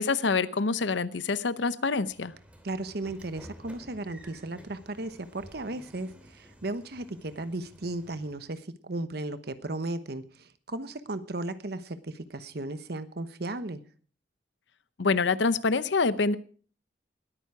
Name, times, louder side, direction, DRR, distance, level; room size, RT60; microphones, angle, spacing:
voice 1, 0.0-2.3 15.0-16.4, left 4 dB, 75° left, 16 dB, 0.7 m, -26 dB
Train / Sliding door, 2.0-8.5, equal, 5° right, 2.7 m, -52 dB
voice 2, 2.6-13.8, right 2 dB, 55° right, 12 dB, 1.0 m, -35 dB
20.0 x 9.2 x 4.7 m, 0.43 s
head